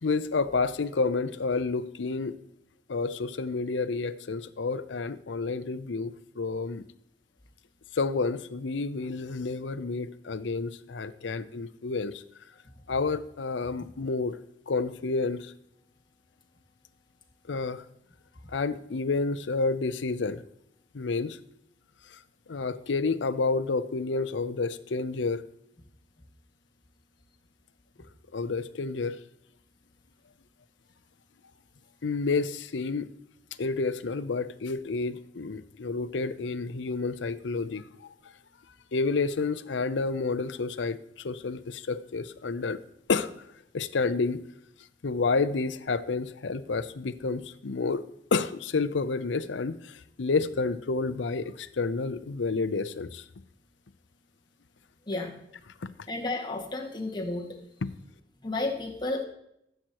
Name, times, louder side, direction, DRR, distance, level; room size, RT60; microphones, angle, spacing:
voice 1, 0.0-2.4 2.9-6.8 7.9-12.2 12.9-14.4 14.7-15.5 17.5-17.8 18.5-20.4 20.9-21.4 22.5-25.4 28.3-29.2 32.0-33.1 33.6-37.8 38.9-42.8 43.1-43.3 43.7-44.4 45.0-48.0 48.3-49.8 50.2-53.2, left 4 dB, 80° left, 14 dB, 0.6 m, -29 dB
voice 2, 56.1-57.5 58.4-59.2, left 2 dB, 25° left, -1 dB, 2.0 m, -32 dB
14.5 x 7.8 x 3.0 m, 0.77 s
head